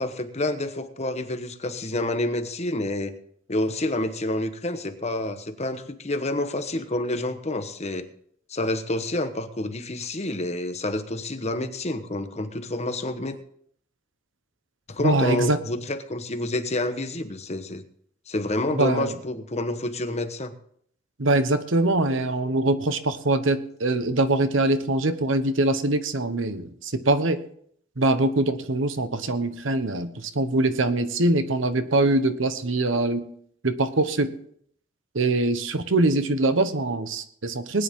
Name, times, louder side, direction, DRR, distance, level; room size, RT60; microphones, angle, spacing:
voice 1, 0.0-3.2 3.5-8.0 8.5-13.4 14.9-17.8 18.3-20.5, left 2 dB, 35° left, 8 dB, 1.1 m, -28 dB
voice 2, 15.0-15.6 18.7-19.1 21.2-27.4 28.0-33.2 33.6-34.3 35.1-37.8, right 2 dB, 80° right, 11 dB, 1.1 m, -23 dB
20.0 x 10.0 x 3.7 m, 0.64 s
head